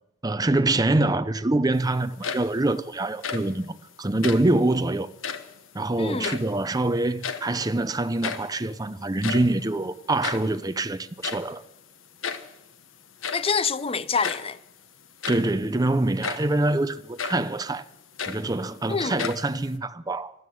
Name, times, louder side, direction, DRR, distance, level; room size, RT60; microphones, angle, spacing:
voice 1, 0.2-5.1 5.7-11.6 15.3-17.8 18.3-20.3, right 2 dB, 20° right, 0.6 m, -25 dB
sound 1, 2.0-2.7 3.1-3.6 4.1-4.6 5.1-5.6 6.0-6.8 7.0-7.7 7.9-8.0 8.2-8.6 9.0-10.6 11.2-11.6 12.2-12.6 13.2-13.6 14.2-14.5 15.0-15.6 16.2-16.6 17.2-17.5 17.9-18.8 19.2-19.8, left 6 dB, 75° left, 1.2 m, -33 dB
voice 2, 6.0-6.4 13.3-14.6 18.9-19.2, left 5 dB, 30° left, 0.6 m, -26 dB
14.5 x 12.5 x 7.9 m
head